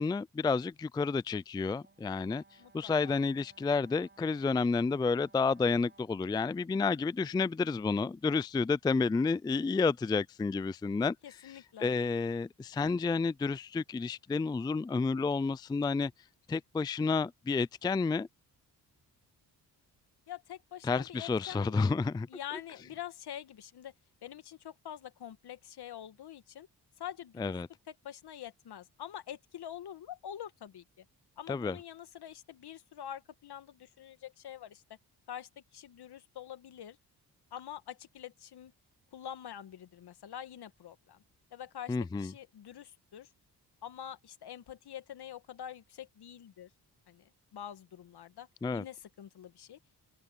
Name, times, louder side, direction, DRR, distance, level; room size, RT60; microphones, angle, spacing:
voice 1, 0.0-2.4 2.7-11.2 11.8-16.1 16.5-18.3 20.8-22.3 27.4-27.7 31.5-31.8 41.9-42.3 48.6-48.8, left 4 dB, 10° left, 0.3 m, -30 dB
Brass instrument, 1.8-6.2, right 3 dB, 25° right, 5.9 m, -62 dB
voice 2, 2.6-3.2 11.2-11.9 20.3-22.0 22.3-23.9 24.2-26.7 27.0-27.6 27.9-31.0 31.4-34.8 35.3-37.0 37.5-38.7 39.1-41.2 41.5-43.3 43.8-46.7 47.1-48.5 48.7-50.0, left 10 dB, 65° left, 1.9 m, -46 dB
supercardioid pair, 55°, 41 cm